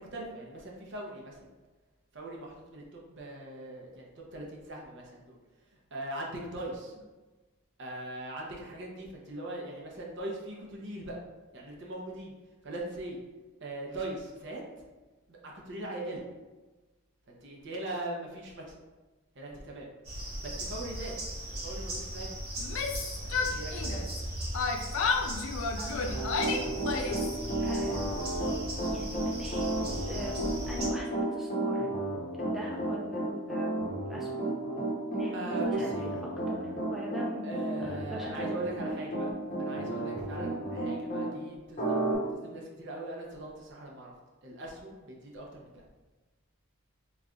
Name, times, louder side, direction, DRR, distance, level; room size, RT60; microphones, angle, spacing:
voice 1, 0.0-1.5 2.1-5.4 5.7-7.0 7.8-11.2 11.5-12.3 12.6-13.2 13.6-14.7 15.3-16.2 17.3-18.8 19.3-19.9 20.4-21.1 21.6-22.5 23.2-24.1 27.0-27.6 35.3-36.1 37.4-39.3 39.6-44.1 44.4-45.9, right 1 dB, 55° right, -1 dB, 0.6 m, -40 dB
sound 1, 20.0-30.9, right 1 dB, 90° right, 1.3 m, -38 dB
Yell, 22.6-24.2 24.5-27.4, left 4 dB, 65° left, 0.3 m, -32 dB
voice 2, 25.8-26.3 26.9-27.0 27.6-28.0 28.9-29.7 30.1-31.9 32.4-33.8 34.0-34.4 35.1-36.1 36.5-38.6, equal, ahead, -4 dB, 0.5 m, -42 dB
Piano, 26.1-41.3 41.8-42.2, right 1 dB, 35° left, 0.7 m, -32 dB
3.7 x 3.1 x 2.3 m, 1.2 s
head